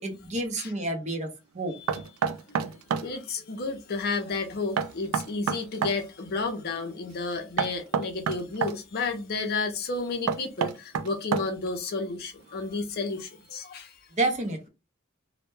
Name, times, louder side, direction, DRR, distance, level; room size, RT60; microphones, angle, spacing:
voice 1, 0.0-1.3 1.5-1.7 14.1-14.7, right 2 dB, 35° right, 0.6 m, -29 dB
Knock, 1.9-3.1 4.8-6.0 7.6-8.8 10.3-11.7, right 7 dB, 90° right, 0.3 m, -28 dB
voice 2, 3.0-13.9, left 3 dB, 50° left, 0.5 m, -32 dB
2.1 x 2.1 x 3.1 m
head